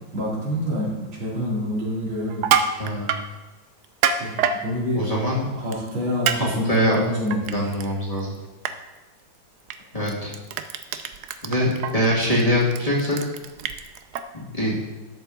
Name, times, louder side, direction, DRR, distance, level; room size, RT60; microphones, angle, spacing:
voice 1, 0.1-2.5 4.0-5.1 5.5-7.6, equal, 85° right, -5 dB, 3.4 m, -27 dB
Crushing, 2.3-3.2 3.8-4.6 5.7-5.9 6.3-6.4 6.8-7.9 8.2-8.4 8.7-8.8 9.7-9.8 10.1-14.2, right 7 dB, 70° right, 1.0 m, -25 dB
voice 2, 4.9-5.4 6.3-7.0 7.5-8.3 9.9-10.3 11.4-13.2 14.3-14.7, equal, 20° left, -6 dB, 2.2 m, -23 dB
11.5 x 7.0 x 3.9 m, 1.2 s
omnidirectional pair, 2.2 m